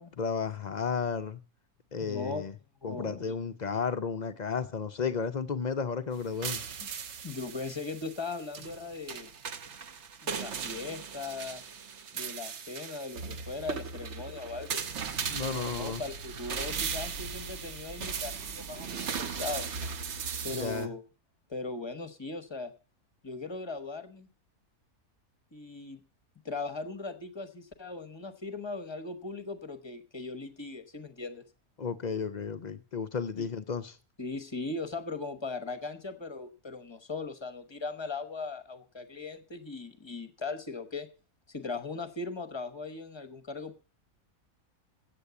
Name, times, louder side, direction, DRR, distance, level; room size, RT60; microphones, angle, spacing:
voice 1, 0.1-1.4 1.9-2.5 2.8-6.6 15.3-16.0 20.5-20.9 31.8-34.0, left 6 dB, 55° left, 0.4 m, -33 dB
voice 2, 2.0-2.4 2.8-3.2 6.8-6.9 7.2-9.3 10.2-11.6 12.1-14.8 15.4-19.7 20.4-21.0 21.5-22.7 23.2-24.3 25.5-26.0 26.4-31.5 33.3-33.5 34.2-41.1 41.5-43.8, left 3 dB, 20° left, 0.9 m, -39 dB
sound 1, 6.1-20.9, right 6 dB, 55° right, 1.0 m, -38 dB
8.4 x 8.1 x 8.1 m
omnidirectional pair, 1.6 m